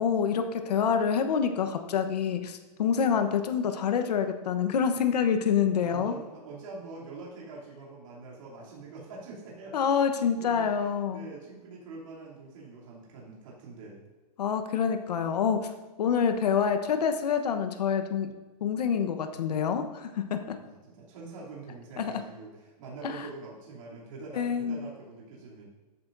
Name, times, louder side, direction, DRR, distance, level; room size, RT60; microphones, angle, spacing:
voice 1, 0.0-6.1 9.7-11.3 14.4-15.7 16.0-18.3 18.6-20.6 22.0-22.1 23.0-23.3 24.3-24.9, left 7 dB, 75° left, 7 dB, 1.1 m, -27 dB
voice 2, 5.8-9.9 10.2-14.0 20.6-25.7, right 3 dB, 50° right, -5 dB, 3.0 m, -44 dB
13.5 x 8.7 x 2.7 m, 1.2 s
hypercardioid pair, 170°, 21 cm